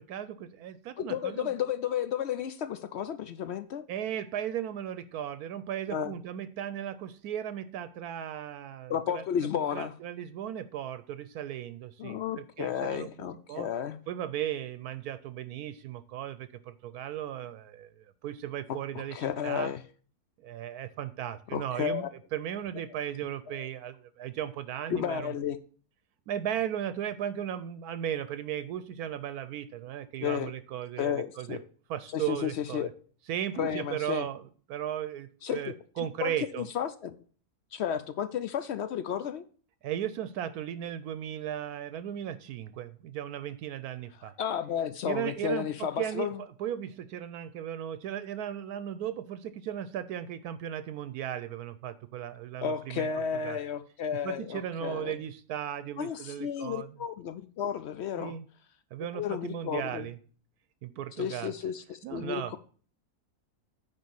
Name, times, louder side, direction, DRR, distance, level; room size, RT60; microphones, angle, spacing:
voice 1, 0.0-1.5 3.9-9.2 9.7-13.1 13.5-13.7 14.1-19.2 19.4-19.7 20.4-25.3 26.3-31.6 31.9-32.9 33.3-34.4 34.7-36.7 39.8-44.3 45.0-46.3 46.6-53.1 53.4-53.6 54.2-56.9 58.2-58.4 58.9-60.2 60.8-61.5 62.0-62.5, right 10 dB, 80° right, 1.1 m, -36 dB
voice 2, 1.0-3.8 5.9-6.2 8.9-9.9 12.0-14.0 18.7-18.8 19.1-19.8 21.5-22.1 23.5-23.6 24.9-25.6 30.2-30.5 31.0-31.6 32.1-32.9 33.6-34.3 35.4-37.2 37.7-39.4 44.4-46.4 52.6-55.2 56.0-58.3 59.1-60.1 61.2-62.6, left 8 dB, 70° left, 0.6 m, -32 dB
9.7 x 3.7 x 6.9 m
omnidirectional pair, 1.6 m